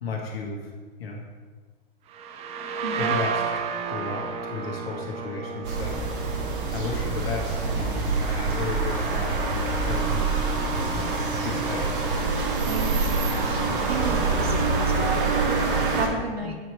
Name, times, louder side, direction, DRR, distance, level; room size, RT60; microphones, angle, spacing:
voice 1, 0.0-0.7 1.0-1.2 2.9-3.4 3.9-6.0 6.7-10.3 10.9-11.1 11.4-11.9, left 3 dB, 75° left, -1 dB, 1.7 m, -33 dB
sound 1, 2.1-9.7, right 5 dB, 20° right, 0.5 m, -33 dB
voice 2, 2.8-3.1 12.6-15.3 15.9-16.6, right 3 dB, 90° right, 3 dB, 1.3 m, -33 dB
sound 2, 5.6-16.1, right 3 dB, 55° right, 1.3 m, -25 dB
8.1 x 4.6 x 4.2 m, 1.4 s
hypercardioid pair, 110°, 31 cm